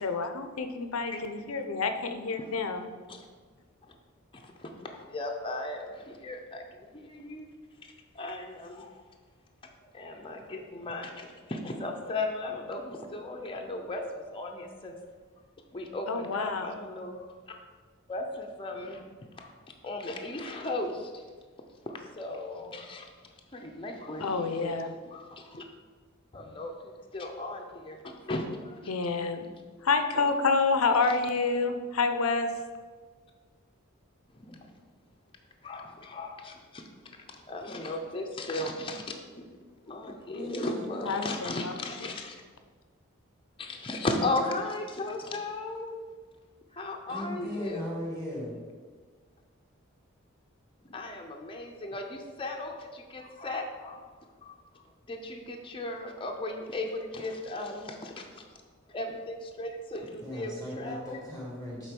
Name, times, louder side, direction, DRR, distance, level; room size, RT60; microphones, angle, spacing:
voice 1, 0.0-2.9 16.1-16.7 24.2-24.9 28.9-29.5 29.8-32.5 41.1-41.7, left 4 dB, 85° left, 8 dB, 0.7 m, -28 dB
voice 2, 4.3-7.5 8.1-9.0 9.9-15.0 15.7-17.6 18.1-19.0 19.3-19.5 19.8-21.2 21.9-23.1 23.5-25.6 26.3-28.9 30.1-30.3 34.3-34.7 35.6-36.9 37.3-39.5 39.8-42.4 43.6-45.9 46.7-47.9 50.8-54.1 54.4-58.4 58.9-61.2, left 2 dB, 25° left, 2 dB, 0.6 m, -36 dB
voice 3, 40.3-41.3 47.1-48.6 60.1-61.9, left 1 dB, 20° right, -6 dB, 1.9 m, -38 dB
7.4 x 4.1 x 5.2 m, 1.5 s
head